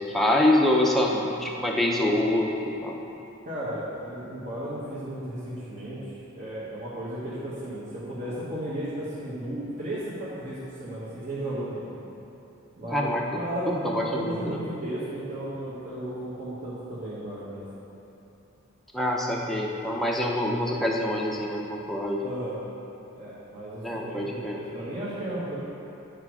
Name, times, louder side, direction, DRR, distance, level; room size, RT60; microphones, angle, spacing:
voice 1, 0.0-2.9 12.9-13.2 13.7-14.6 18.9-22.3 23.8-24.6, left 1 dB, ahead, -2 dB, 0.6 m, -25 dB
voice 2, 3.4-11.9 12.8-17.6 22.2-22.6 23.1-25.6, right 1 dB, 40° right, -11 dB, 1.5 m, -34 dB
10.0 x 5.2 x 4.8 m, 2.9 s
head